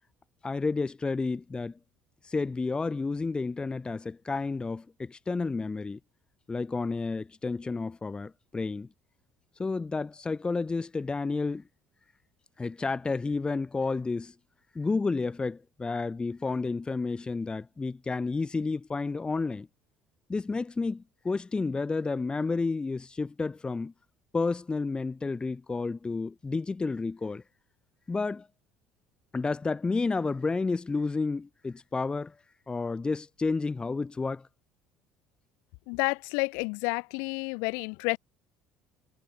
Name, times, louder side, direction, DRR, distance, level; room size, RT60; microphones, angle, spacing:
voice 1, 0.4-1.7 2.3-6.0 6.5-8.9 9.6-11.6 12.6-14.3 14.7-19.7 20.3-23.9 24.3-27.4 28.1-28.5 29.3-32.3 32.7-34.4, left 4 dB, 20° left, 0.8 m, -31 dB
voice 2, 35.9-38.2, left 34 dB, 70° left, 1.5 m, -30 dB
hypercardioid pair, 65°, 5 cm